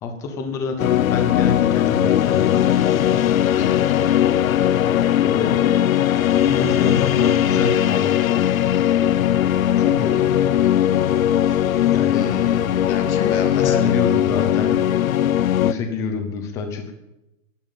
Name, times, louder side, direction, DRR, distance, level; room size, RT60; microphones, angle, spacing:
voice 1, 0.0-3.3 5.2-5.6 6.4-8.4 9.8-10.7 11.9-12.2 13.6-15.1 15.5-16.9, left 4 dB, 10° left, 6 dB, 0.7 m, -27 dB
sound 1, 0.8-15.7, left 11 dB, 80° left, 0.8 m, -19 dB
voice 2, 12.1-13.9, left 6 dB, 55° left, 4 dB, 2.9 m, -31 dB
11.0 x 10.5 x 9.3 m, 0.92 s
hypercardioid pair, 175°, 41 cm